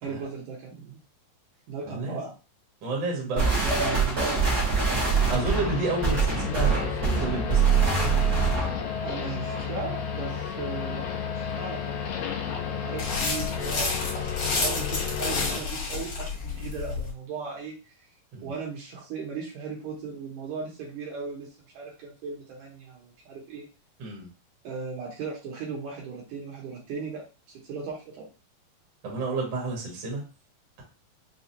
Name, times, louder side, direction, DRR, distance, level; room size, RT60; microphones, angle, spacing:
voice 1, 0.0-1.0 1.7-2.3 3.2-4.7 9.0-11.1 11.3-12.2 12.8-17.8 18.4-21.5 21.7-23.7 24.6-27.2 27.6-28.3, right 5 dB, 70° right, -4 dB, 2.4 m, -37 dB
voice 2, 1.9-2.2 2.8-3.5 5.2-8.2 18.3-18.5 24.0-24.3 29.0-30.2, right 2 dB, 50° right, -3 dB, 1.4 m, -31 dB
sound 1, 3.4-8.8, right 5 dB, 85° right, 0.8 m, -24 dB
sound 2, 5.3-15.6, left 7 dB, 80° left, 2.4 m, -32 dB
sound 3, 13.0-17.1, left 3 dB, 50° left, 1.9 m, -30 dB
5.9 x 2.3 x 2.8 m, 0.33 s
omnidirectional pair, 4.2 m